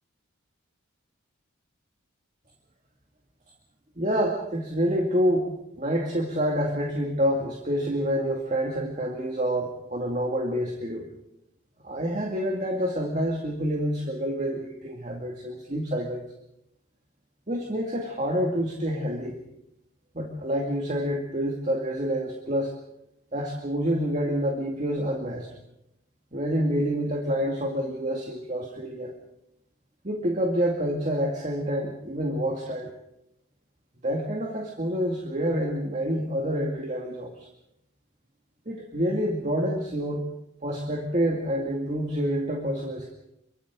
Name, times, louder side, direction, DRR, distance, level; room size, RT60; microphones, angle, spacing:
voice 1, 4.0-11.1 11.8-16.2 17.5-19.4 20.1-22.8 23.3-25.5 26.3-29.2 30.0-32.9 34.0-37.5 38.7-40.2 40.6-43.1, equal, 35° right, 1 dB, 2.2 m, -27 dB
28.0 x 24.5 x 3.8 m, 0.82 s
head